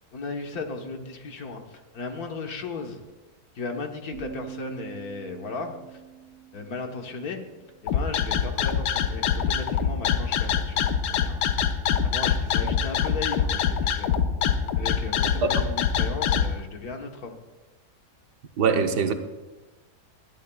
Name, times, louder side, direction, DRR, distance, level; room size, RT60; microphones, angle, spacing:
voice 1, 0.1-3.0 3.5-6.0 6.5-7.4 7.8-11.5 12.0-14.2 14.7-17.4, left 4 dB, 65° left, 3 dB, 1.7 m, -36 dB
sound 1, 4.1-8.0, right 9 dB, 50° left, 1.8 m, -44 dB
sound 2, 7.9-16.5, left 8 dB, 85° left, 1.4 m, -24 dB
voice 2, 18.6-19.1, right 5 dB, 80° right, 6 dB, 1.5 m, -23 dB
20.5 x 13.0 x 2.3 m, 1.1 s
omnidirectional pair, 1.8 m